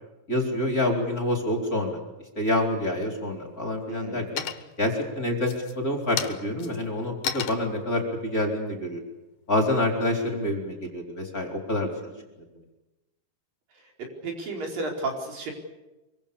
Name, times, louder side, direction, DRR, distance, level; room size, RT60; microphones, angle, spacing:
voice 1, 0.3-2.0 2.4-4.4 4.8-9.0 9.5-11.9, left 1 dB, 25° left, 2 dB, 4.1 m, -27 dB
sound 1, 2.7-3.3 3.7-4.1 4.4-4.9 5.4-9.8, left 8 dB, 80° left, 3.2 m, -35 dB
voice 2, 3.9-4.3 14.2-15.5, right 2 dB, 75° right, 1 dB, 6.3 m, -32 dB
25.5 x 24.5 x 7.0 m, 1.0 s
omnidirectional pair, 4.0 m